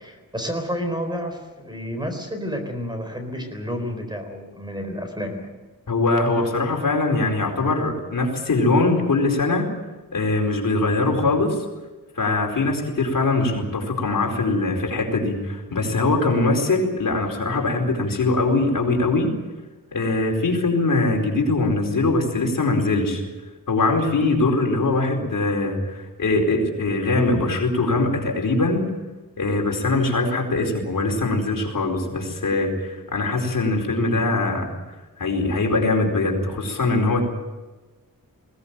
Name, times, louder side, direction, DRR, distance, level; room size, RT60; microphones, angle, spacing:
voice 1, 0.0-5.5, equal, 10° right, 5 dB, 4.2 m, -30 dB
voice 2, 5.9-9.7 10.1-11.6 12.2-19.3 19.9-23.2 23.7-28.9 29.4-34.7 35.2-37.2, left 2 dB, 65° left, 1 dB, 4.6 m, -22 dB
21.0 x 18.5 x 9.0 m, 1.2 s
wide cardioid pair, 115°, 35 cm